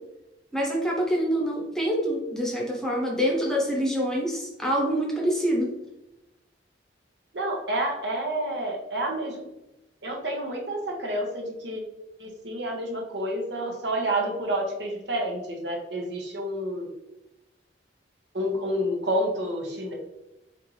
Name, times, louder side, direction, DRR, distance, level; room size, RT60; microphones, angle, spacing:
voice 1, 0.5-5.7, equal, 5° left, -2 dB, 0.8 m, -26 dB
voice 2, 7.3-9.4 10.0-11.8 12.2-16.9 18.3-19.9, right 1 dB, 70° right, 0 dB, 1.1 m, -29 dB
4.4 x 3.8 x 3.1 m, 0.93 s
head